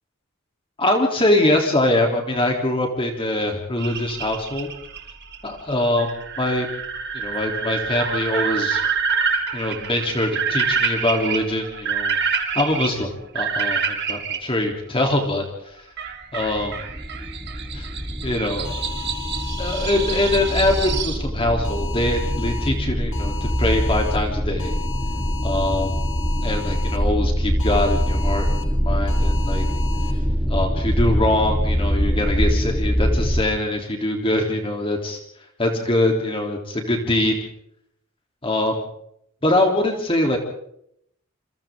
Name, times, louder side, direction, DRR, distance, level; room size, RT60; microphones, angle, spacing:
voice 1, 0.8-4.7 5.4-6.7 7.1-8.8 9.5-12.2 12.5-15.7 16.3-16.7 17.7-17.9 18.2-18.9 19.6-24.7 25.4-25.9 26.4-29.7 30.5-35.2 35.6-37.4 38.4-38.8 39.4-40.4, left 1 dB, 25° left, 2 dB, 3.3 m, -23 dB
sound 1, 3.8-14.4 16.0-21.2, right 6 dB, 55° right, 2.6 m, -27 dB
sound 2, 16.4-33.4, equal, 5° right, 2.2 m, -24 dB
sound 3, 18.6-21.0 21.6-22.7 23.1-24.2 24.6-27.0 27.6-28.6 29.1-30.1, left 9 dB, 65° left, 3.6 m, -36 dB
29.0 x 26.0 x 3.7 m, 0.72 s
head